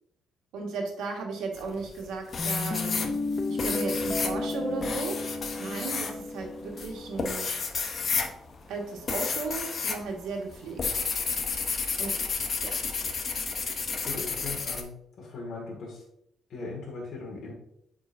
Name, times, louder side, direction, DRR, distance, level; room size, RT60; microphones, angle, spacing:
voice 1, 0.5-3.1 3.5-5.2 5.6-7.5 8.7-11.1 12.0-12.2 12.6-12.8, right 4 dB, 85° right, 1 dB, 1.6 m, -35 dB
sound 1, 1.6-2.0 2.3-10.0 10.3-14.8, left 5 dB, 50° left, 0.9 m, -31 dB
Guitar, 2.4-7.4, left 3 dB, 30° left, 0.5 m, -33 dB
voice 2, 14.0-14.9 15.2-16.0 16.5-17.5, left 3 dB, 65° left, -3 dB, 1.9 m, -38 dB
8.5 x 4.7 x 2.6 m, 0.73 s
cardioid pair, 90°, 0 cm